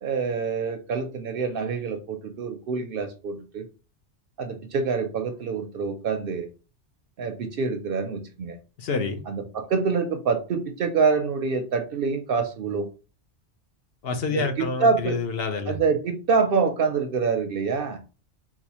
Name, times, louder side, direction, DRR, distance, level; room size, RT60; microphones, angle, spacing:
voice 1, 0.0-3.7 4.4-6.5 7.2-8.6 9.3-12.9 14.3-15.2 15.7-18.0, right 5 dB, 60° right, 0.7 m, -26 dB
voice 2, 8.8-9.2 14.0-15.8, left 4 dB, 60° left, 0.8 m, -28 dB
4.0 x 2.4 x 2.8 m
omnidirectional pair, 1.2 m